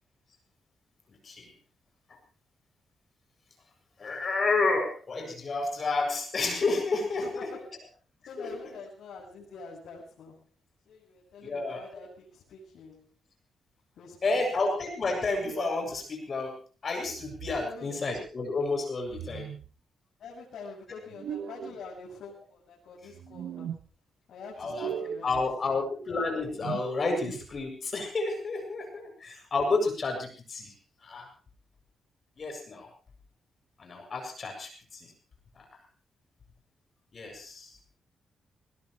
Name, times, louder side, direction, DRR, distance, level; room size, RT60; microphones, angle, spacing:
voice 1, 1.1-1.5 2.1-2.2 4.0-7.7 8.4-8.7 11.4-11.8 14.2-19.5 24.6-24.9 25.2-30.7 31.0-31.3 32.4-32.9 33.8-35.1 35.5-35.7 37.1-37.8, left 3 dB, 40° left, 3 dB, 7.7 m, -30 dB
voice 2, 7.2-7.6 8.2-10.5 10.9-13.1 14.0-14.4 17.6-17.9 20.2-23.9 24.3-25.4 29.1-29.2, left 4 dB, 80° left, -4 dB, 7.1 m, -46 dB
sound 1, 15.4-16.0 17.0-17.7 19.1-19.7 21.1-21.8 23.1-23.8 24.6-25.4 26.4-27.6, right 8 dB, 85° right, 1.6 m, -39 dB
21.5 x 20.5 x 3.3 m, 0.37 s
cardioid pair, 130°, 0 cm